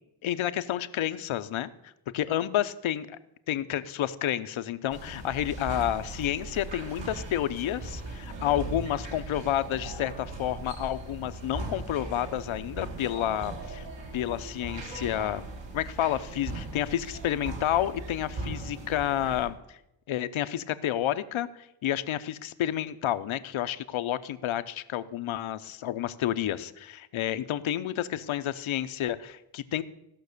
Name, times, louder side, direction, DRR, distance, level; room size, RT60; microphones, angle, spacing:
voice 1, 0.2-1.7 2.1-3.2 3.5-13.9 14.1-15.4 15.7-19.8 20.1-29.8, left 12 dB, 70° left, 13 dB, 0.8 m, -30 dB
sound 1, 4.9-19.5, right 2 dB, 60° right, 1.9 m, -39 dB
15.5 x 6.0 x 6.7 m, 0.85 s
cardioid pair, 100°, 49 cm